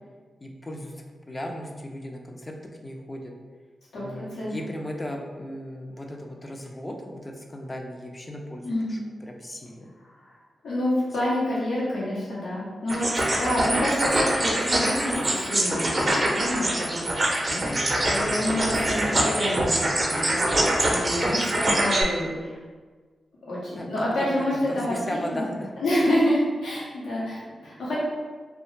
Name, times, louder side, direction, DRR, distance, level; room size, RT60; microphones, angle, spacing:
voice 1, 0.4-2.6 2.8-3.3 4.0-9.9 17.5-18.9 23.7-23.9 24.2-25.8, left 1 dB, 25° left, 1 dB, 0.4 m, -37 dB
voice 2, 3.9-4.5 8.6-9.0 10.0-10.4 10.6-17.3 17.9-19.0 19.3-20.4 20.9-22.6 23.5-25.4 25.8-27.9, left 1 dB, 85° left, -8 dB, 0.9 m, -28 dB
sound 1, 12.9-22.0, right 1 dB, 40° right, 0.5 m, -24 dB
2.4 x 2.3 x 3.1 m, 1.4 s
cardioid pair, 55°, 0 cm